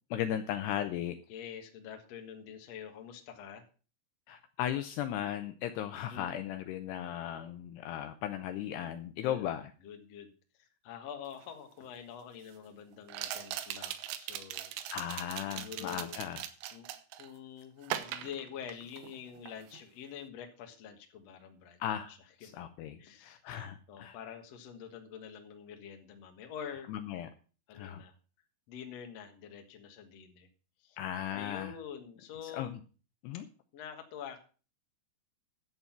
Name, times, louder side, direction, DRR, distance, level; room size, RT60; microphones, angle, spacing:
voice 1, 0.1-1.2 4.3-9.7 14.9-16.5 21.8-22.1 22.4-24.2 26.9-27.3 27.7-28.0 31.0-31.8 32.4-32.8 33.2-33.5, left 11 dB, 80° left, 8 dB, 2.5 m, -36 dB
voice 2, 1.3-3.6 6.1-6.3 9.1-9.5 9.8-14.7 15.5-16.2 16.7-16.9 17.2-21.8 22.1-22.6 23.0-23.4 23.9-26.9 27.7-28.1 28.7-30.5 30.8-31.0 31.3-32.7 33.7-34.4, left 8 dB, 60° left, 4 dB, 1.8 m, -46 dB
sound 1, 11.4-11.5 13.1-17.3 17.8-19.2 19.5-19.8, right 12 dB, 80° right, 3.1 m, -40 dB
11.0 x 8.0 x 5.9 m, 0.37 s
omnidirectional pair, 5.3 m